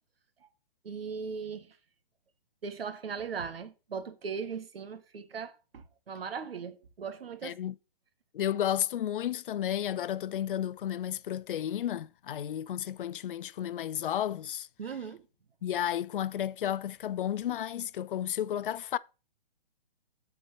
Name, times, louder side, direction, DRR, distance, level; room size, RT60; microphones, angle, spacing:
voice 1, 0.8-1.8 2.6-7.6 14.8-15.2, right 6 dB, 75° right, 1.5 m, -38 dB
voice 2, 7.4-7.7 8.3-14.7 15.6-19.0, left 10 dB, 60° left, 0.6 m, -32 dB
8.1 x 4.6 x 5.7 m
hypercardioid pair, 140°, 30 cm